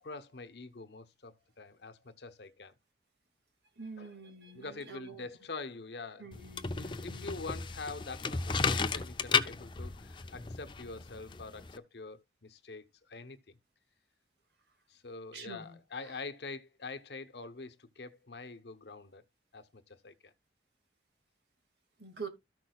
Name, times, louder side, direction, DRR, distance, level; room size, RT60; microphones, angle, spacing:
voice 1, 0.0-2.7 4.0-4.1 4.5-6.3 6.8-13.6 14.9-19.2 19.5-20.3, left 3 dB, 70° left, 0.9 m, -45 dB
voice 2, 3.8-5.3 6.2-7.5 15.3-16.2 22.0-22.3, right 4 dB, 75° right, 2.1 m, -47 dB
sound 1, 6.3-11.8, left 4 dB, 25° left, 0.5 m, -34 dB
13.5 x 6.1 x 2.3 m
head